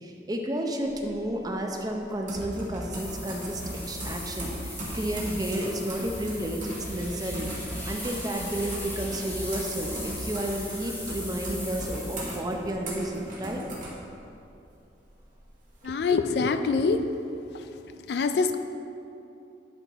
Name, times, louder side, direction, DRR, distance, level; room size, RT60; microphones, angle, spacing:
voice 1, 0.0-3.6 3.9-13.6, right 1 dB, 20° right, 2 dB, 0.6 m, -32 dB
sound 1, 0.8-14.6 15.0-15.9, right 1 dB, 45° right, 1.7 m, -40 dB
sound 2, 2.3-12.1, equal, 65° right, 1.2 m, -40 dB
sound 3, 2.9-12.4, left 1 dB, 10° left, 1.4 m, -40 dB
voice 2, 15.8-17.0 17.5-17.7 18.1-18.6, left 4 dB, 65° left, 8 dB, 0.4 m, -25 dB
10.5 x 4.5 x 4.1 m, 2.7 s
head